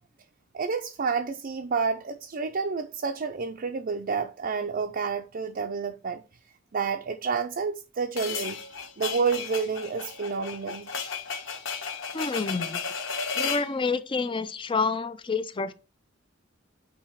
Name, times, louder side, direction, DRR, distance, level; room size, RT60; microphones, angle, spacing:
voice 1, 0.5-6.2 6.7-8.6 9.0-10.9, right 5 dB, 50° right, 0.5 m, -29 dB
sound 1, 8.2-13.7, left 5 dB, 70° left, 1.2 m, -33 dB
voice 2, 12.1-12.8 13.4-15.7, left 4 dB, 25° left, 0.5 m, -28 dB
8.6 x 2.9 x 4.6 m
head